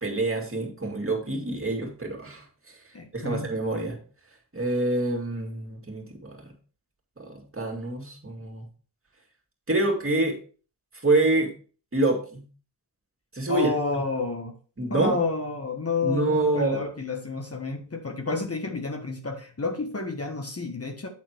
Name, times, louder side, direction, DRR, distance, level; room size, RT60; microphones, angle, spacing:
voice 1, 0.0-2.8 3.1-4.0 4.5-6.5 7.2-8.6 9.7-10.4 11.0-11.5 11.9-12.4 13.3-13.7 14.8-15.1 16.0-16.9, right 2 dB, 35° right, 1 dB, 2.5 m, -26 dB
voice 2, 2.9-3.5 13.5-14.5 14.9-21.1, left 3 dB, 40° left, 4 dB, 1.5 m, -30 dB
8.8 x 4.2 x 4.7 m, 0.39 s
cardioid pair, 55°, 39 cm